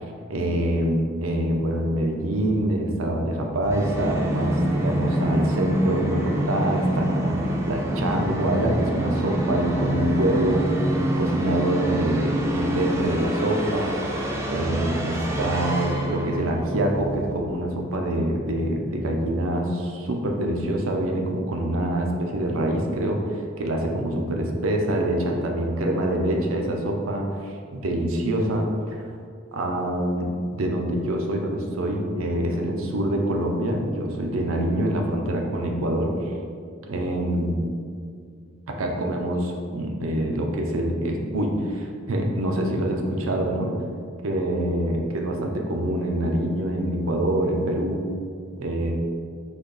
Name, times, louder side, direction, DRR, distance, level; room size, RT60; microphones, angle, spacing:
voice 1, 0.3-10.7 11.2-14.0 14.5-28.7 29.5-36.1 36.8-37.6 38.7-43.7 44.2-48.0 48.6-48.9, right 1 dB, 85° right, 2 dB, 0.6 m, -25 dB
Musical instrument, 3.6-17.3, right 1 dB, 15° right, 0.4 m, -26 dB
4.1 x 2.9 x 3.9 m, 2.2 s
head